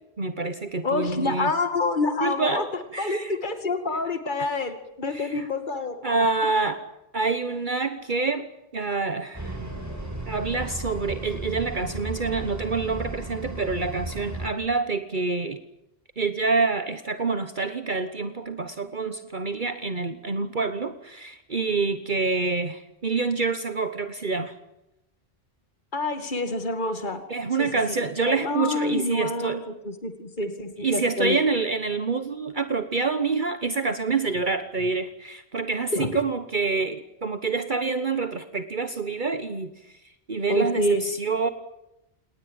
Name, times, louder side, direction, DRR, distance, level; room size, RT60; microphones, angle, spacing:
voice 1, 0.2-1.5 2.2-2.7 2.9-3.3 5.1-5.5 6.0-6.8 7.1-8.5 8.7-9.6 10.3-15.6 16.2-24.5 27.3-29.6 30.8-39.7 40.3-41.5, right 4 dB, 50° right, 10 dB, 1.4 m, -27 dB
voice 2, 0.8-6.3 25.9-27.2 27.6-27.7 28.3-31.4 35.9-36.1 40.5-41.0, left 2 dB, 45° left, 8 dB, 2.5 m, -27 dB
sound 1, 9.3-14.5, right 2 dB, 15° right, 6.6 m, -35 dB
28.0 x 19.5 x 8.9 m, 0.89 s
omnidirectional pair, 1.1 m